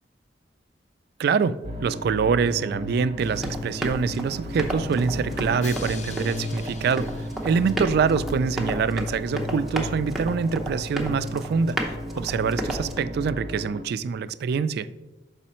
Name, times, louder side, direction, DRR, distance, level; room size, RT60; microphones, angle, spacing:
voice 1, 1.2-7.1 7.4-11.8 12.1-14.9, right 5 dB, 60° right, 14 dB, 0.3 m, -25 dB
sound 1, 1.6-13.8, equal, 35° right, 0.9 m, -35 dB
Drum, 3.2-8.1, left 3 dB, 40° left, 0.5 m, -40 dB
Run, 3.3-13.0, right 1 dB, ahead, 0.8 m, -33 dB
6.3 x 4.9 x 4.3 m, 1.1 s
head